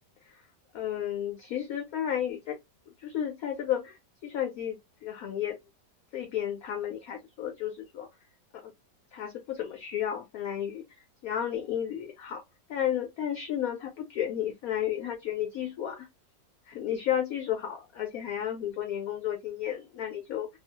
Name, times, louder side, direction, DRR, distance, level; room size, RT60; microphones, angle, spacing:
voice 1, 0.7-2.6 2.9-5.6 6.1-8.1 8.6-8.7 9.1-10.8 11.2-12.4 12.7-16.1 16.7-20.5, left 10 dB, 70° left, 0.9 m, -32 dB
2.9 x 2.0 x 2.8 m
omnidirectional pair, 1.9 m